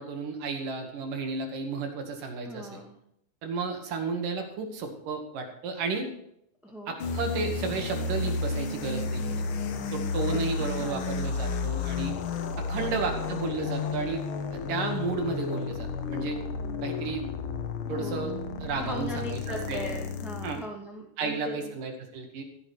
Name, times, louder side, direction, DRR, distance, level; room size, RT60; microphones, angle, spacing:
voice 1, 0.0-2.8 3.4-6.1 6.9-9.4 9.9-12.2 12.7-14.3 14.5-16.4 16.8-17.3 17.9-18.3 18.6-19.9 20.4-20.6 21.2-22.4, right 4 dB, 80° right, 3 dB, 3.7 m, -33 dB
voice 2, 2.4-3.0 6.6-7.0 10.3-11.2 12.7-13.2 17.9-18.4 18.7-21.7, equal, ahead, 0 dB, 1.2 m, -40 dB
sound 1, 7.0-20.6, left 4 dB, 60° left, 1.4 m, -32 dB
15.0 x 7.9 x 6.2 m, 0.72 s
omnidirectional pair, 3.7 m